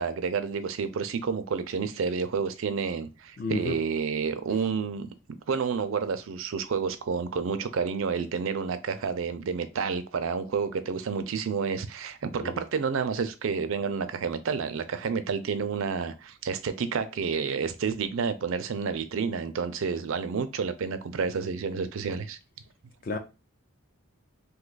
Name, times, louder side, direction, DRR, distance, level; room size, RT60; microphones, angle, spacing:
voice 1, 0.0-5.1 5.5-22.4, right 5 dB, 70° right, 0.4 m, -30 dB
voice 2, 3.4-3.8 12.4-12.6 23.0-23.2, left 2 dB, 40° left, 0.4 m, -31 dB
2.7 x 2.3 x 3.9 m
head